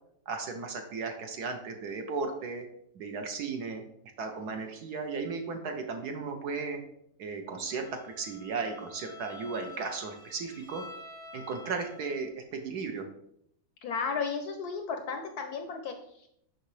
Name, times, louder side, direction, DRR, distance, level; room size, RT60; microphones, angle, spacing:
voice 1, 0.3-2.6 2.9-3.8 4.2-6.8 7.2-10.8 11.3-13.1, right 4 dB, 65° right, 5 dB, 1.1 m, -35 dB
Bowed string instrument, 7.6-12.3, left 2 dB, 5° left, 0.7 m, -49 dB
voice 2, 13.8-16.3, left 5 dB, 70° left, 5 dB, 0.9 m, -34 dB
6.5 x 5.8 x 3.2 m, 0.73 s
omnidirectional pair, 2.1 m